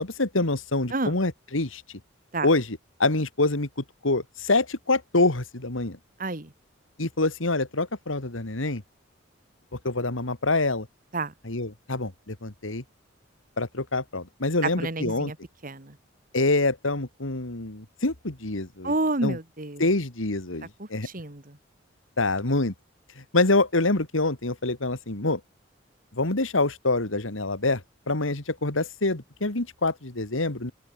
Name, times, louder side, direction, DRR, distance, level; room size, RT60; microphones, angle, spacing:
voice 1, 0.0-2.0 2.4-3.7 4.0-6.0 7.0-8.8 9.8-10.9 11.4-12.8 13.6-15.3 16.3-18.9 19.2-19.4 19.8-21.1 22.2-22.7 23.2-25.4 26.1-27.8 28.1-30.7, left 2 dB, 85° left, 2.4 m, -26 dB
voice 2, 6.2-6.5 11.1-11.3 14.6-15.4 15.6-16.0 18.8-19.8 20.8-21.6, right 2 dB, 45° right, 2.3 m, -29 dB
open air
head